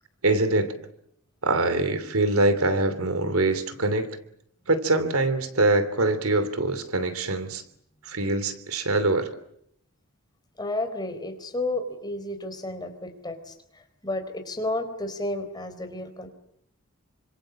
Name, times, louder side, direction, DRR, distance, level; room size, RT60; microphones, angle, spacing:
voice 1, 0.2-0.7 1.4-4.2 4.7-7.6 8.0-9.3, right 2 dB, 70° right, 2.9 m, -24 dB
voice 2, 10.6-13.5 14.0-16.3, left 2 dB, 20° left, 4.2 m, -31 dB
29.0 x 26.0 x 7.6 m
head